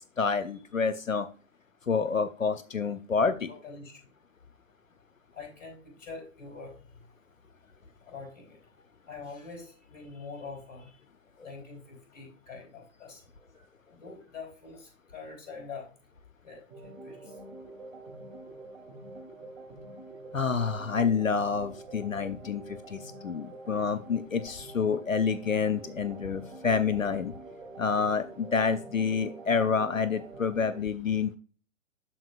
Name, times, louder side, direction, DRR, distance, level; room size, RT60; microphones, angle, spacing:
voice 1, 0.2-1.3 1.9-3.5 20.3-27.3 27.8-31.3, left 5 dB, 90° left, 12 dB, 0.6 m, -28 dB
voice 2, 3.2-4.0 5.3-6.7 8.1-8.6 9.1-10.9 11.4-13.3 13.5-13.7 13.9-15.9 16.4-17.4, left 4 dB, 35° left, 1 dB, 3.8 m, -45 dB
sound 1, 16.7-30.8, right 2 dB, 10° right, 1.8 m, -46 dB
13.0 x 4.4 x 2.5 m, 0.37 s
figure-of-eight pair, 130°, 39 cm